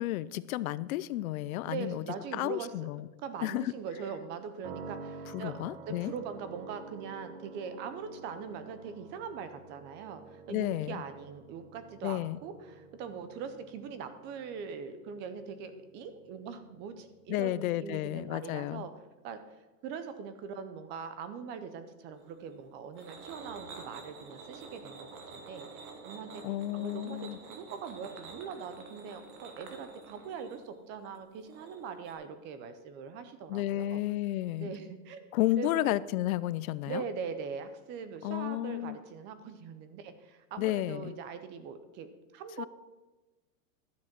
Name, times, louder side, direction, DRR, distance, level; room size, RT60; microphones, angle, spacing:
voice 1, 0.0-2.0 2.3-3.1 3.4-3.7 5.3-6.1 10.5-11.0 12.0-12.4 17.3-18.8 26.4-27.4 33.5-34.7 35.3-37.0 38.2-39.0 40.6-41.1 42.6-42.7, left 15 dB, 70° left, 18 dB, 0.6 m, -32 dB
voice 2, 1.6-2.9 3.2-5.6 5.9-18.9 19.2-19.4 19.8-26.4 26.7-34.0 34.6-35.3 35.6-35.9 36.9-42.1 42.3-42.7, right 6 dB, 25° right, 11 dB, 0.6 m, -42 dB
sound 1, 4.6-18.5, right 4 dB, 45° right, 1.2 m, -50 dB
sound 2, 22.1-32.1, right 4 dB, 75° right, 2.3 m, -49 dB
12.0 x 7.5 x 5.9 m, 1.2 s
supercardioid pair, 160°, 44 cm